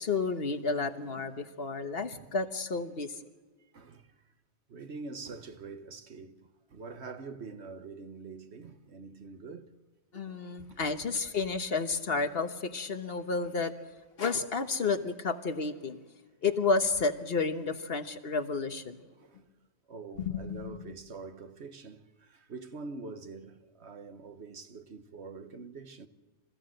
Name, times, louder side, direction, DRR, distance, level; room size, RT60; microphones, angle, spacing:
voice 1, 0.0-3.2 10.1-13.7 14.2-16.0 16.4-19.0 20.2-20.6, left 4 dB, 60° left, 1.4 m, -31 dB
voice 2, 3.7-4.2 4.7-9.7 10.3-10.9 19.0-19.5 19.9-26.1, right 4 dB, 70° right, 1.5 m, -45 dB
27.0 x 15.5 x 7.8 m
omnidirectional pair, 1.2 m